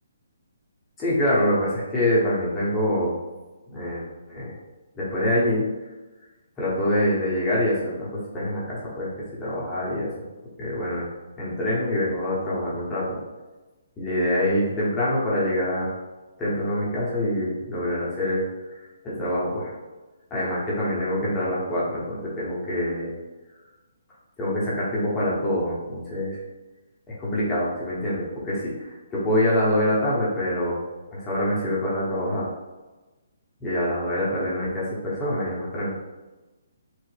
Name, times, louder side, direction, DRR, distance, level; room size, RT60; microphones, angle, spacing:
voice 1, 1.0-3.2 3.7-4.6 4.9-5.7 6.6-10.1 10.6-11.1 11.4-13.2 14.0-15.9 16.4-18.4 19.0-19.7 20.3-23.1 24.4-26.4 27.1-30.8 31.1-32.5 33.6-35.9, left 1 dB, 15° left, -8 dB, 0.9 m, -25 dB
3.1 x 2.0 x 3.2 m, 1.2 s
hypercardioid pair, 145°, 0 cm